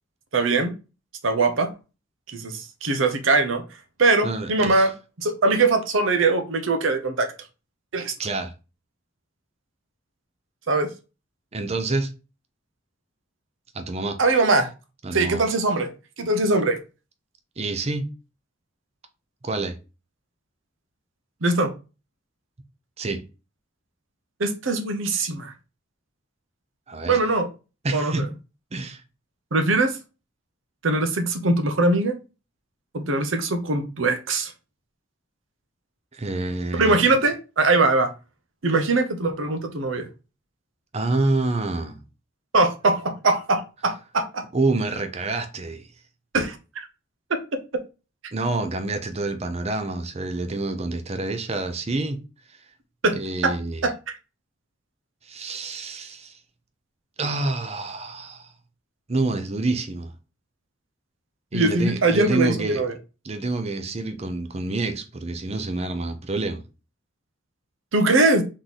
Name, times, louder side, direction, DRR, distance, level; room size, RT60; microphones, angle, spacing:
voice 1, 0.3-0.7 1.2-1.7 2.3-3.6 4.0-4.9 5.2-7.3 7.9-8.1 10.7-10.9 14.2-14.7 15.1-15.9 16.2-16.8 21.4-21.7 24.4-25.5 27.1-27.5 27.9-28.3 29.5-30.0 30.8-32.1 32.9-34.5 36.7-38.1 38.6-40.1 42.5-44.4 46.3-46.9 47.7-47.8 53.0-53.2 53.4-53.5 53.8-53.9 61.5-62.9 67.9-68.4, right 3 dB, 80° right, 0.8 m, -21 dB
voice 2, 4.2-4.9 8.2-8.5 11.5-12.1 13.7-14.2 15.0-15.4 17.6-18.1 19.4-19.8 23.0-23.2 26.9-27.2 27.8-28.3 28.7-29.0 36.1-37.0 40.9-42.0 44.5-45.9 48.3-52.2 53.2-53.9 55.3-56.4 57.2-58.5 59.1-60.1 61.5-62.8 63.2-66.6, right 2 dB, 35° right, 0.6 m, -27 dB
3.8 x 3.1 x 4.0 m
head